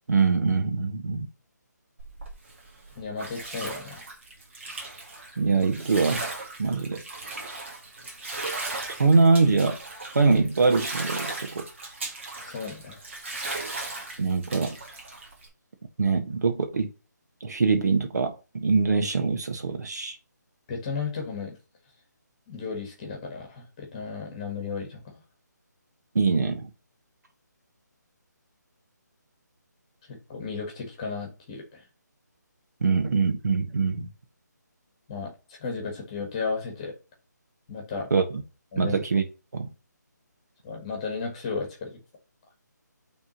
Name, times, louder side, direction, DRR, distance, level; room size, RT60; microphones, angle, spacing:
voice 1, 0.1-1.3 5.4-6.3 6.6-7.0 9.0-9.8 10.1-11.7 14.2-14.8 16.0-16.9 17.4-20.1 26.1-26.7 32.8-34.1 38.1-38.4 38.8-39.2 39.5-39.7, right 4 dB, 65° right, 1.5 m, -23 dB
Bathtub (filling or washing), 2.0-15.5, right 2 dB, 40° right, 1.8 m, -37 dB
voice 2, 2.9-4.0 12.4-13.0 20.7-21.6 22.5-25.1 30.1-31.8 35.1-35.3 35.6-36.9 37.7-38.1 38.7-39.0 40.6-42.0, left 4 dB, 15° left, 1.5 m, -34 dB
8.6 x 3.6 x 3.1 m
hypercardioid pair, 175°, 10 cm